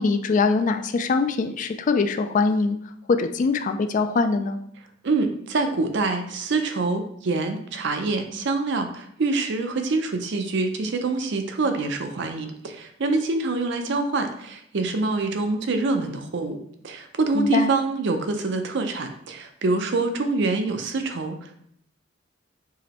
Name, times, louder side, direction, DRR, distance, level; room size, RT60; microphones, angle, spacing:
voice 1, 0.0-2.8 3.1-4.6 17.3-17.7, left 4 dB, 40° left, 8 dB, 0.3 m, -22 dB
voice 2, 5.0-16.6 16.8-21.6, right 3 dB, 65° right, 6 dB, 0.5 m, -25 dB
4.8 x 3.0 x 2.9 m, 0.68 s
head